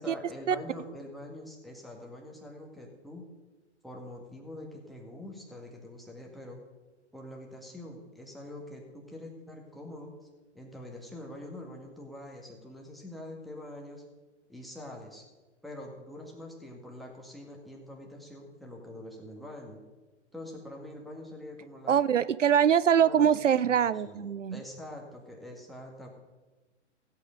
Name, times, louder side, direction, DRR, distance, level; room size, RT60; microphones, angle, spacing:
voice 1, 0.0-3.3 3.8-6.6 7.1-10.1 10.5-14.0 14.5-15.2 15.6-19.8 20.3-22.0 23.0-23.8 24.0-26.1, left 1 dB, ahead, 0 dB, 1.8 m, -44 dB
voice 2, 21.9-24.6, right 8 dB, 85° right, 18 dB, 0.5 m, -23 dB
16.0 x 8.5 x 5.1 m, 1.2 s
figure-of-eight pair, 120°, 36 cm